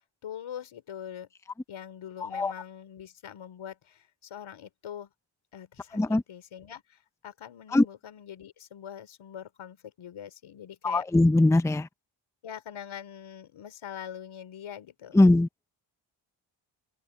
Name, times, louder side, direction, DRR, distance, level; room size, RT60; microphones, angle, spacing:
voice 1, 0.2-1.3 1.7-5.1 5.5-11.0 12.4-15.2, left 9 dB, 80° left, 4.1 m, -43 dB
voice 2, 2.2-2.5 5.9-6.2 7.7-7.9 10.8-11.9 15.1-15.5, left 2 dB, 5° left, 0.6 m, -21 dB
open air
cardioid pair, 55°, 47 cm